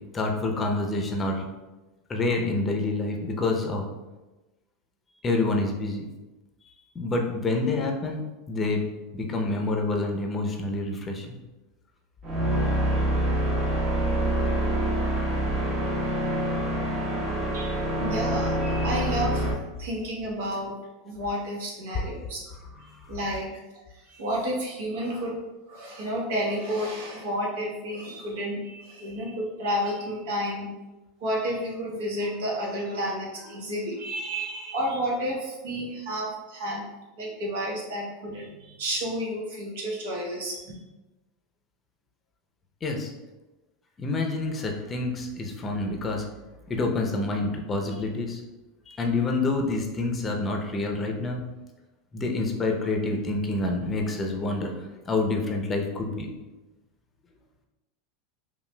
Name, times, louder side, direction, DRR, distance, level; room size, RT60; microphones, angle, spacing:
voice 1, 0.1-1.5 2.1-3.9 5.2-6.1 6.6-8.2 8.5-8.9 9.1-11.4 22.0-22.1 22.9-23.1 42.8-43.1 44.0-46.3 46.7-48.4 48.9-51.4 52.1-56.3, left 2 dB, 25° left, 2 dB, 0.6 m, -27 dB
sound 1, 12.2-19.5, right 1 dB, 40° right, 1.2 m, -26 dB
voice 2, 17.5-19.5 19.8-20.7 21.0-22.4 23.1-23.5 23.9-25.4 25.7-30.7 31.2-36.9 37.2-40.8, equal, 75° right, -2 dB, 1.1 m, -31 dB
5.5 x 2.3 x 2.2 m, 1.1 s
hypercardioid pair, 100°, 0 cm